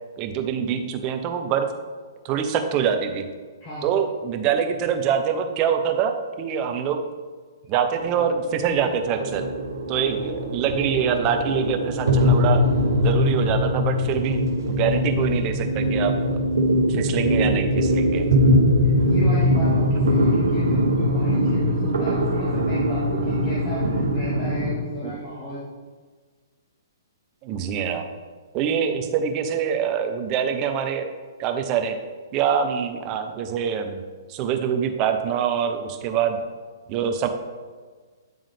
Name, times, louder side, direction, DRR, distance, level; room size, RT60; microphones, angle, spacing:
voice 1, 0.2-1.7 2.2-3.3 3.8-7.0 7.7-9.4 9.9-12.6 13.0-14.4 14.7-16.4 16.9-18.3 25.0-25.2 27.4-28.1 28.5-31.1 31.4-32.0 32.3-34.0 34.3-36.4 36.9-37.3, right 8 dB, 30° right, 6 dB, 0.7 m, -25 dB
sound 1, 7.9-24.7, equal, 75° right, 1.2 m, -21 dB
voice 2, 18.8-25.7, left 1 dB, 30° left, -9 dB, 1.7 m, -34 dB
9.3 x 3.6 x 3.5 m, 1.5 s
figure-of-eight pair, 125°, 2 cm